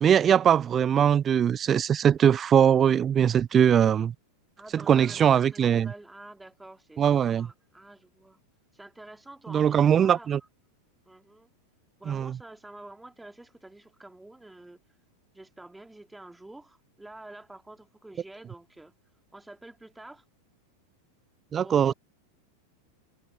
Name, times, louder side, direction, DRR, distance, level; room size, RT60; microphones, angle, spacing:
voice 1, 0.0-4.1 4.7-5.9 7.0-7.5 9.5-10.4 12.1-12.4 21.5-21.9, right 8 dB, 25° right, 0.5 m, -21 dB
voice 2, 4.6-8.4 8.7-10.3 11.0-11.5 12.0-14.8 15.3-18.9 19.3-20.2 21.6-21.9, right 2 dB, 5° right, 3.0 m, -48 dB
figure-of-eight pair, 90°, 0 cm